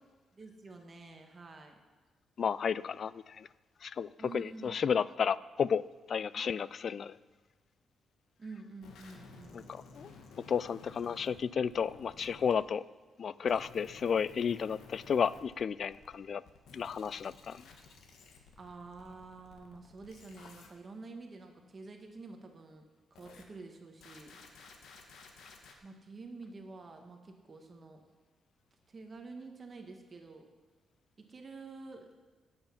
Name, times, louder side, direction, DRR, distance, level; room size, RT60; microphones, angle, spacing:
voice 1, 0.3-1.7 4.2-4.8 6.4-6.5 8.4-9.7 18.6-22.8 23.1-24.4 25.8-28.0 28.9-30.5 31.3-32.2, right 3 dB, 30° right, 4 dB, 1.3 m, -48 dB
voice 2, 2.4-3.5 3.8-7.2 9.5-10.1 10.5-12.8 13.2-16.4 16.7-17.6, left 7 dB, 45° left, 18 dB, 0.3 m, -32 dB
sound 1, 8.8-12.5 13.5-16.2 16.4-20.7 23.1-23.4 24.0-25.7, left 4 dB, 90° left, 1.7 m, -54 dB
17.5 x 8.1 x 5.8 m, 1.3 s
cardioid pair, 155°, 0 cm